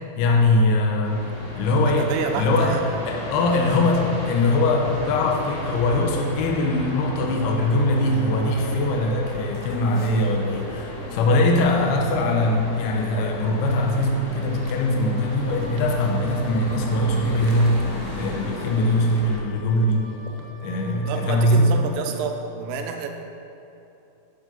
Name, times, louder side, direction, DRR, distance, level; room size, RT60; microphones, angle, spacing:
voice 1, 0.2-1.3 1.6-2.8 3.1-17.8 18.1-20.2 20.6-21.8, left 1 dB, 70° left, 0 dB, 2.5 m, -21 dB
sound 1, 1.0-19.4, equal, 50° left, 2.5 m, -35 dB
voice 2, 1.9-2.9 3.6-3.8 8.4-8.7 18.3-18.7 21.1-23.1, right 6 dB, 90° right, 4 dB, 3.4 m, -29 dB
sound 2, 9.5-10.3 10.6-10.7 11.2-11.8 12.4-12.5 12.9-13.0 13.7-14.2 14.6-15.1 15.4-21.1 21.4-22.2, right 4 dB, 65° right, 2.9 m, -42 dB
Wind instrument woodwind instrument, 15.1-21.8, equal, 15° left, 2.0 m, -47 dB
12.0 x 7.9 x 5.3 m, 2.8 s
omnidirectional pair, 5.6 m